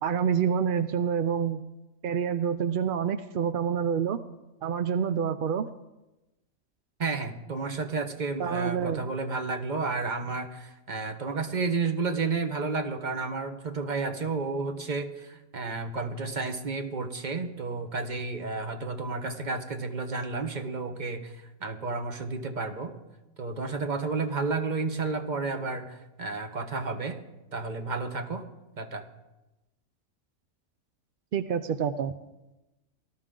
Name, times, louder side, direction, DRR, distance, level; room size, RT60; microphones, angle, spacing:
voice 1, 0.0-1.6 2.0-4.2 4.6-5.7 8.4-9.0 31.3-32.1, right 7 dB, 65° right, 10 dB, 0.5 m, -27 dB
voice 2, 7.0-21.3 21.6-22.9 23.4-27.2 27.5-28.4 28.8-29.1, right 4 dB, 35° right, 7 dB, 1.1 m, -31 dB
19.0 x 13.0 x 3.8 m, 1.0 s
omnidirectional pair, 1.5 m